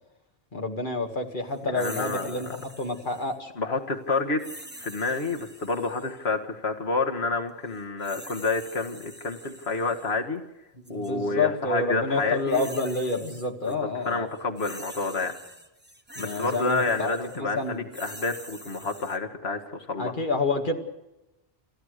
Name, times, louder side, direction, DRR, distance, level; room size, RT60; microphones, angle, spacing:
voice 1, 0.5-3.5 10.9-14.3 16.2-17.9 20.0-20.8, left 3 dB, 50° left, 3 dB, 2.3 m, -28 dB
voice 2, 1.7-2.4 3.6-4.4 4.8-10.4 10.9-12.7 13.6-15.3 16.2-20.2, left 3 dB, 80° left, 5 dB, 1.9 m, -29 dB
sound 1, 1.7-3.4 4.4-6.2 7.7-10.1 10.8-11.1 12.2-13.7 14.0-19.2, right 1 dB, 10° right, 1.4 m, -45 dB
28.0 x 14.0 x 6.6 m, 0.97 s
omnidirectional pair, 1.1 m